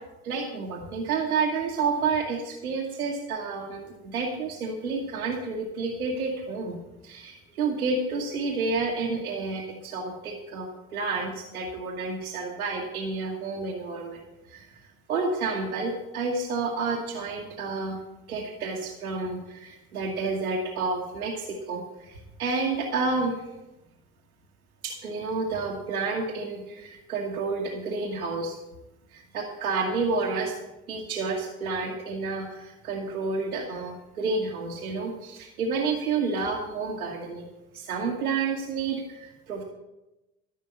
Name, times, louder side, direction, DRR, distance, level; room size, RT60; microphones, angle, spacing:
voice 1, 0.2-14.8 15.1-18.0 18.3-23.3 24.8-28.6 29.1-30.5 30.9-37.5 37.7-39.6, right 4 dB, 85° right, -1 dB, 1.4 m, -30 dB
13.5 x 5.8 x 8.4 m, 0.99 s
hypercardioid pair, 55°, 43 cm